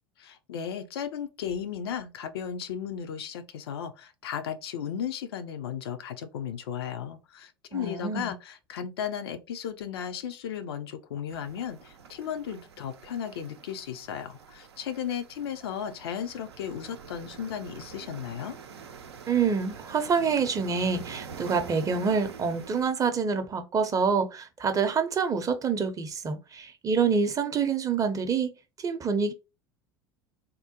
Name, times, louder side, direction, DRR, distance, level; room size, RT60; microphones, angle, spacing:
voice 1, 0.2-18.6, left 8 dB, 70° left, 0.5 m, -35 dB
voice 2, 7.7-8.3 19.3-28.5 28.8-29.3, right 5 dB, 25° right, 0.6 m, -27 dB
sound 1, 11.3-22.9, right 6 dB, 80° right, 0.5 m, -46 dB
3.6 x 2.1 x 2.7 m
figure-of-eight pair, 75°, 13 cm